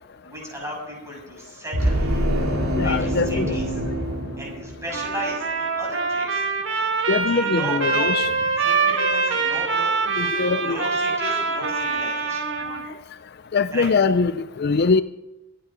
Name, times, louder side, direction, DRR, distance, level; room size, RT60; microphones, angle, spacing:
voice 1, 0.2-2.0 2.8-3.6 4.4-6.4 7.3-9.9 10.5-12.5 13.7-13.9, equal, 15° right, -2 dB, 7.0 m, -35 dB
sound 1, 1.7-5.2, equal, 90° right, 2.9 m, -24 dB
voice 2, 2.8-3.6 7.1-8.2 10.2-10.8 12.7-12.8 13.5-15.0, left 4 dB, 50° left, 13 dB, 0.4 m, -22 dB
Trumpet, 4.9-12.9, right 4 dB, 60° right, 2.0 m, -24 dB
23.5 x 10.0 x 5.1 m, 0.98 s
head